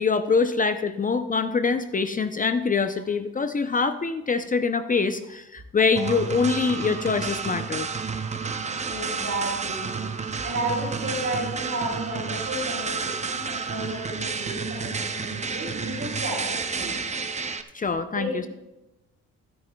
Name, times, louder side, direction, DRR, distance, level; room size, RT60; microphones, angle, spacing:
voice 1, 0.0-7.9 17.7-18.5, left 4 dB, 25° left, 10 dB, 0.6 m, -24 dB
sound 1, 5.9-17.6, right 5 dB, 25° right, 0.7 m, -30 dB
voice 2, 8.9-10.0 10.4-17.0 18.1-18.5, right 1 dB, 45° right, -3 dB, 4.0 m, -32 dB
16.0 x 9.8 x 2.3 m, 0.96 s
cardioid pair, 90°, 30 cm